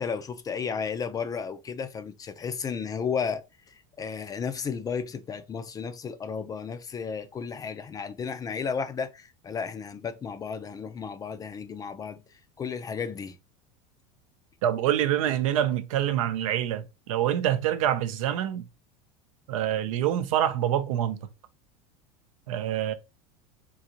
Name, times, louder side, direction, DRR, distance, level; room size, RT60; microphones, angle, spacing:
voice 1, 0.0-12.2 12.6-13.4, left 6 dB, 20° left, 0.4 m, -33 dB
voice 2, 14.6-18.6 19.5-21.2 22.5-22.9, right 11 dB, 85° right, 0.6 m, -26 dB
3.8 x 2.6 x 2.8 m
supercardioid pair, 120°, 17 cm